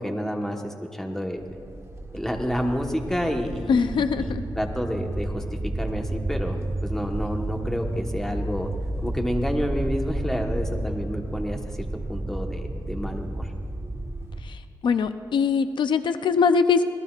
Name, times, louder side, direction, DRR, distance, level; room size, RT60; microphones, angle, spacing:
voice 1, 0.0-1.5 2.1-5.4 5.8-8.7 9.0-13.5, equal, 5° left, 2 dB, 1.2 m, -29 dB
sound 1, 1.4-14.4, right 1 dB, 35° right, 1.1 m, -31 dB
voice 2, 3.7-4.4 14.4-16.8, left 5 dB, 90° left, 10 dB, 0.5 m, -22 dB
25.5 x 18.0 x 2.4 m, 2.3 s
wide cardioid pair, 130°, 8 cm